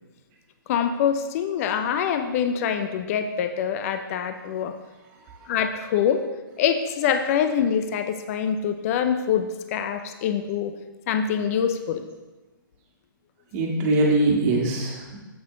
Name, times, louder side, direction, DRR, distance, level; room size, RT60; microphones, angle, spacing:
voice 1, 0.7-4.7 5.5-6.2 6.6-10.7 11.1-12.0, left 8 dB, 40° left, 8 dB, 0.6 m, -25 dB
voice 2, 5.1-5.6 13.5-15.2, right 2 dB, 35° right, -1 dB, 1.9 m, -23 dB
8.0 x 7.9 x 3.9 m, 1.2 s
figure-of-eight pair, 125°, 12 cm